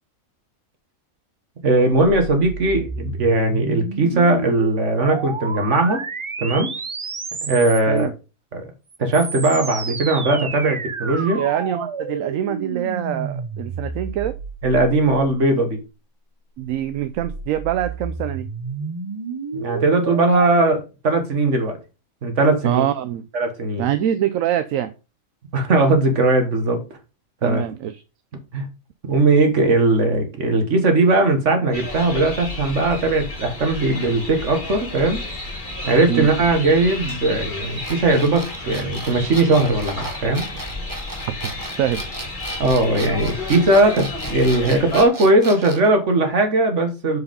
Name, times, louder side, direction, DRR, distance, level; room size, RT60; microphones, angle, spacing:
voice 1, 1.6-6.0 6.4-6.7 7.4-8.1 8.5-8.6 9.0-11.4 14.6-15.8 19.5-21.8 22.2-22.8 23.3-23.9 25.5-26.8 27.4-27.6 28.5-28.7 29.1-35.2 35.8-40.5 42.6-47.2, right 2 dB, 60° right, 1.9 m, -19 dB
sound 1, 1.9-8.0 8.9-15.5 16.6-20.5, right 4 dB, 35° right, 0.5 m, -31 dB
voice 2, 11.3-14.4 16.6-18.5 22.6-23.2 23.8-24.9 27.4-28.0 36.1-36.3 41.3-41.5 41.8-42.0, right 11 dB, 75° right, 1.0 m, -24 dB
sound 2, 31.7-45.1, left 2 dB, 35° left, 2.6 m, -32 dB
sound 3, 37.8-45.9, right 2 dB, 15° right, 1.1 m, -35 dB
6.4 x 4.9 x 5.2 m
omnidirectional pair, 1.5 m